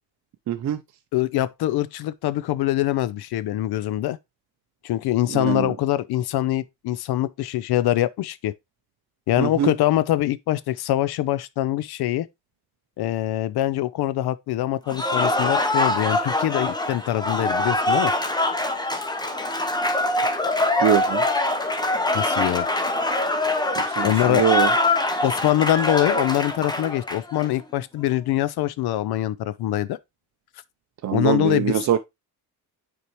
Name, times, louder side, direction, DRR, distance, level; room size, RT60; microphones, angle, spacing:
voice 1, 0.5-0.8 5.3-5.7 9.4-9.7 20.8-21.2 23.8-24.7 31.0-32.0, right 9 dB, 45° right, 0.6 m, -23 dB
voice 2, 1.1-4.2 4.8-8.5 9.3-12.3 13.0-18.1 22.1-22.7 24.0-24.5 25.2-30.0 31.1-31.9, left 14 dB, 65° left, 0.6 m, -24 dB
Cheering / Applause, 14.9-27.5, left 2 dB, 10° left, 0.9 m, -23 dB
6.8 x 4.6 x 3.0 m
cardioid pair, 95°, 41 cm